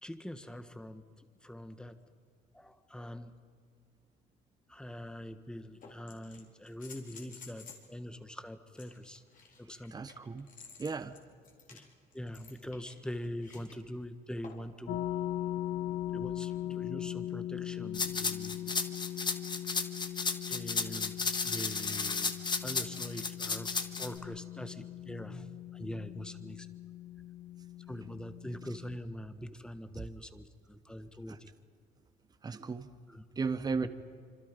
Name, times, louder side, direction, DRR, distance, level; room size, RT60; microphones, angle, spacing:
voice 1, 0.0-2.0 2.5-3.3 4.7-9.2 9.6-9.9 11.7-15.0 16.1-18.6 20.5-22.3 22.6-23.7 24.0-26.7 27.9-31.5 33.1-33.2 33.8-33.9, left 1 dB, 5° left, 10 dB, 1.5 m, -43 dB
sound 1, 4.8-4.9 5.8-7.9 8.7-13.8 14.4-14.8 16.4-16.5, left 5 dB, 50° left, 4.2 m, -53 dB
voice 2, 9.9-10.5 10.8-11.1 32.4-32.9 33.4-33.9, right 4 dB, 25° right, 11 dB, 1.0 m, -34 dB
sound 2, 14.9-29.0, left 12 dB, 80° left, 0.9 m, -40 dB
sound 3, 17.9-24.1, left 4 dB, 25° left, 1.7 m, -33 dB
26.5 x 25.5 x 5.3 m, 2.2 s
cardioid pair, 110°, 17 cm